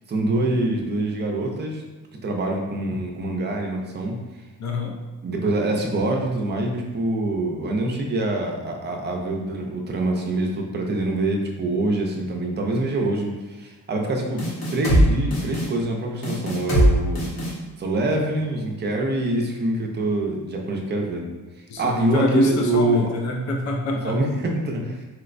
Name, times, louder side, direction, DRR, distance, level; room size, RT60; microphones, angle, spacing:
voice 1, 0.1-1.8 2.2-4.1 5.2-14.4 14.7-17.2 17.8-21.3 21.8-23.1 24.0-25.0, right 2 dB, 35° right, 1 dB, 0.5 m, -25 dB
voice 2, 4.6-4.9 21.7-24.2, left 2 dB, 60° left, 1 dB, 0.5 m, -25 dB
sound 1, 14.4-15.0 15.3-15.7 16.2-16.9 17.2-17.5, equal, 90° left, 1.2 m, -20 dB
4.3 x 2.1 x 2.5 m, 1.2 s
cardioid pair, 140°, 32 cm